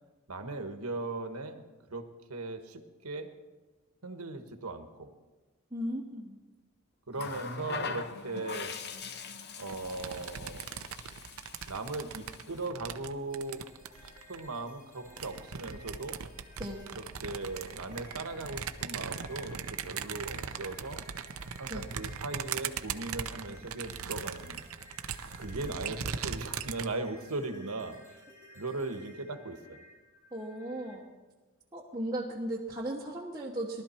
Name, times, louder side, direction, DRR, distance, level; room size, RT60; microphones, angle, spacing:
voice 1, 0.3-1.6 1.9-3.3 4.0-5.1 7.1-8.7 9.6-10.7 11.7-13.6 14.3-16.2 16.9-21.0 21.6-24.6 25.4-28.0 28.5-29.6, right 2 dB, 85° right, 7 dB, 1.3 m, -38 dB
voice 2, 5.7-6.4 16.6-16.9 21.7-21.9 30.3-31.0 31.7-33.8, right 1 dB, 15° right, -5 dB, 1.1 m, -36 dB
Water tap faucet, 7.1-12.7 13.9-14.1, left 5 dB, 50° left, 0.8 m, -42 dB
sound 1, 9.7-14.5 15.0-26.9, right 7 dB, 70° right, 0.7 m, -39 dB
sound 2, 13.3-31.0, left 1 dB, 15° left, 2.4 m, -55 dB
19.0 x 12.5 x 4.4 m, 1.2 s
head